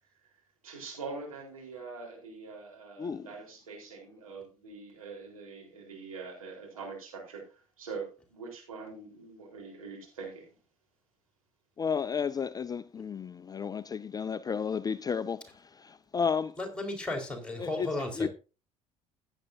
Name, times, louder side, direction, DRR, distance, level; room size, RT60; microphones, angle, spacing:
voice 1, 0.2-10.4, right 4 dB, 80° right, 4.3 m, -44 dB
voice 2, 3.0-3.3 11.8-16.6 17.6-17.9 18.2-18.3, left 6 dB, 20° left, 0.5 m, -32 dB
voice 3, 16.6-18.3, left 2 dB, 5° left, 4.7 m, -34 dB
16.0 x 9.8 x 2.7 m
figure-of-eight pair, 55°, 18 cm